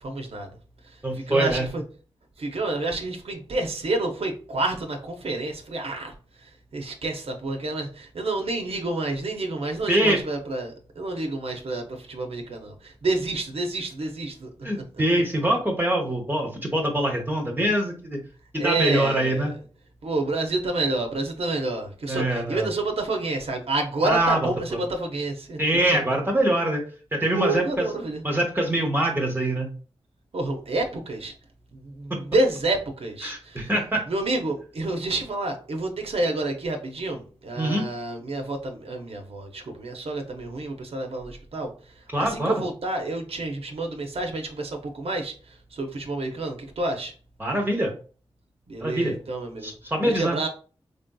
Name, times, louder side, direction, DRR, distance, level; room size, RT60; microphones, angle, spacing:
voice 1, 0.0-0.6 0.8-1.8 2.4-15.0 18.6-19.6 20.0-26.0 27.3-28.2 30.3-31.3 31.7-33.7 34.1-47.1 48.7-50.5, right 2 dB, 65° right, 0.6 m, -29 dB
voice 2, 1.0-1.6 9.9-10.2 14.6-18.2 18.5-19.5 22.1-22.7 24.0-24.4 25.6-26.8 27.1-27.9 28.2-29.7 33.2-34.0 37.6-37.8 42.1-42.6 47.4-47.9 48.8-49.1 49.6-50.4, right 1 dB, 20° right, 0.7 m, -24 dB
3.3 x 2.6 x 2.2 m
cardioid pair, 45°, 11 cm